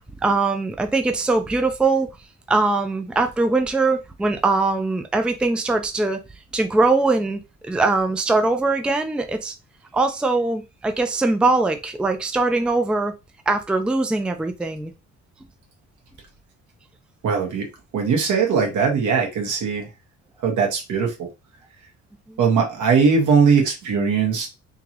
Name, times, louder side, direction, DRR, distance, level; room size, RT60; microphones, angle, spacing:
voice 1, 0.2-2.2 2.5-6.2 6.5-9.5 9.9-13.1 13.5-14.9 22.3-22.4, right 3 dB, 5° right, 6 dB, 0.4 m, -21 dB
voice 2, 17.2-17.7 17.9-19.9 20.4-21.3 22.4-24.5, right 5 dB, 80° right, 2 dB, 1.6 m, -20 dB
3.7 x 2.9 x 3.0 m, 0.25 s
cardioid pair, 125°, 30 cm